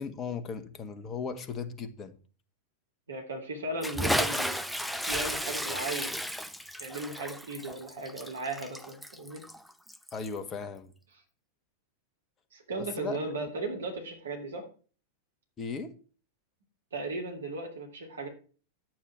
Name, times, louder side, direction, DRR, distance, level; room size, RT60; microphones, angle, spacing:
voice 1, 0.0-2.2 10.1-10.9 12.8-13.5 15.6-16.0, left 5 dB, 25° left, 1.4 m, -37 dB
voice 2, 3.1-4.6 5.1-6.2 6.8-9.4 12.5-14.6 16.9-18.3, right 2 dB, 65° right, 2.8 m, -36 dB
Bathtub (filling or washing) / Splash splatter, 3.8-10.4, equal, ahead, 0.7 m, -33 dB
10.5 x 8.9 x 4.6 m
figure-of-eight pair, 90°, 0 cm